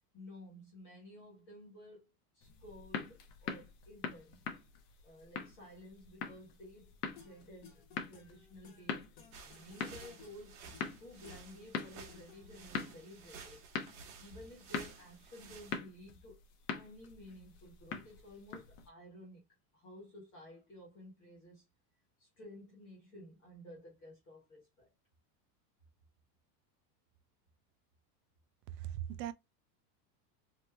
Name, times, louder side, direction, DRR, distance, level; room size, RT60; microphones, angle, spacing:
voice 1, 0.1-4.4 5.0-10.6 11.0-13.7 14.2-16.4 16.7-19.4 19.7-21.6 22.2-24.9, left 1 dB, 15° left, 0.3 m, -54 dB
Bounceing Ball, 2.4-18.9, left 6 dB, 80° left, 0.9 m, -44 dB
sound 1, 7.2-12.7, left 6 dB, 50° left, 1.0 m, -59 dB
sound 2, 9.3-15.8, right 5 dB, 50° right, 0.9 m, -54 dB
voice 2, 28.8-29.3, right 11 dB, 90° right, 0.6 m, -39 dB
3.2 x 2.1 x 3.1 m
supercardioid pair, 180°, 47 cm